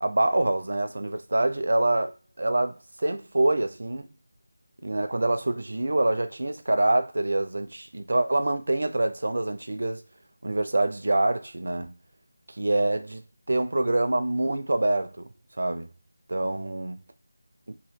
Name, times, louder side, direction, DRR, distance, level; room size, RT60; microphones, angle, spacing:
voice 1, 0.0-2.1 2.4-4.1 4.8-10.0 10.4-11.9 12.5-13.2 13.5-15.3 15.6-15.9 16.3-17.0, right 2 dB, 65° right, 0.4 m, -25 dB
2.8 x 2.2 x 3.4 m
figure-of-eight pair, 165°, 0 cm